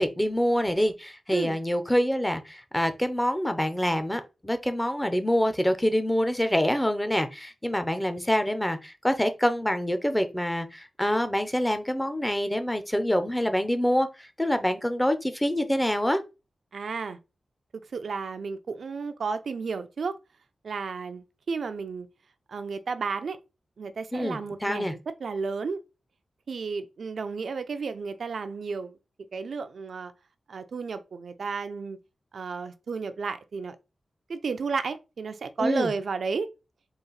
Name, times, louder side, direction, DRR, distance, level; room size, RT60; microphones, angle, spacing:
voice 1, 0.0-16.2 24.1-24.9 35.6-35.9, equal, 10° left, 0.5 m, -26 dB
voice 2, 16.7-17.2 17.9-20.2 20.6-22.1 22.5-23.4 23.8-25.8 26.5-29.0 29.3-30.1 30.5-32.0 32.3-33.8 34.3-36.5, right 5 dB, 70° right, 0.4 m, -32 dB
4.0 x 2.4 x 3.9 m
wide cardioid pair, 110°, 0 cm